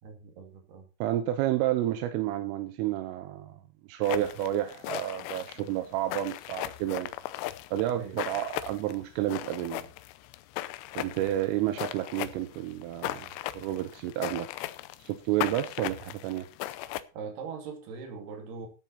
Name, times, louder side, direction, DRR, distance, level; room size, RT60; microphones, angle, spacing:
voice 1, 0.0-0.9 7.9-8.2 17.1-18.7, right 5 dB, 55° right, 4.4 m, -41 dB
voice 2, 1.0-3.6 3.9-7.1 7.7-9.9 11.0-14.5 15.0-16.5, right 13 dB, 85° right, 3.5 m, -30 dB
sound 1, 4.0-17.0, left 15 dB, 80° left, 3.1 m, -38 dB
14.0 x 9.7 x 4.2 m
omnidirectional pair, 5.8 m